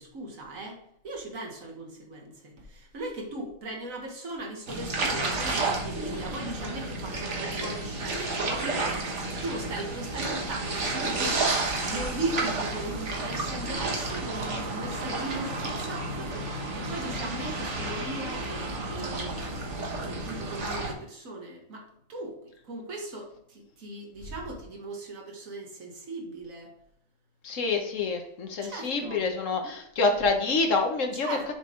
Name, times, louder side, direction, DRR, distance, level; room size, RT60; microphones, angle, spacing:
voice 1, 0.0-16.4 16.8-19.4 20.0-26.7 28.6-29.2 31.2-31.5, right 2 dB, 80° right, 0 dB, 2.0 m, -38 dB
sound 1, 4.7-20.9, right 2 dB, 60° right, 1.6 m, -31 dB
voice 2, 27.4-31.3, left 3 dB, 70° left, 4 dB, 1.5 m, -27 dB
7.2 x 5.5 x 3.8 m, 0.73 s
omnidirectional pair, 1.4 m